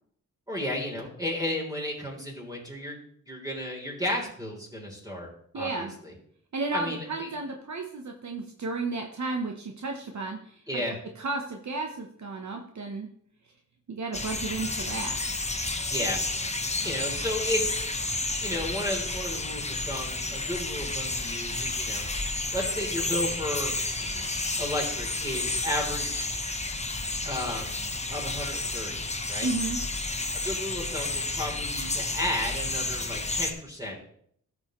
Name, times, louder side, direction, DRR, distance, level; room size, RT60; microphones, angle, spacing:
voice 1, 0.5-3.0 3.3-5.3 5.5-6.1 6.7-7.3 10.7-11.0 15.9-16.2 16.8-17.9 18.4-22.1 22.5-24.3 24.6-26.4 27.2-27.8 28.1-29.5 30.4-34.0, left 1 dB, 10° right, -2 dB, 3.5 m, -33 dB
voice 2, 5.5-5.9 6.5-10.8 11.2-13.1 13.9-15.2 29.4-29.8, right 3 dB, 60° right, 2 dB, 1.0 m, -33 dB
sound 1, 14.1-33.5, left 2 dB, 20° left, 0.9 m, -31 dB
13.5 x 6.3 x 3.1 m, 0.65 s
wide cardioid pair, 80°, 31 cm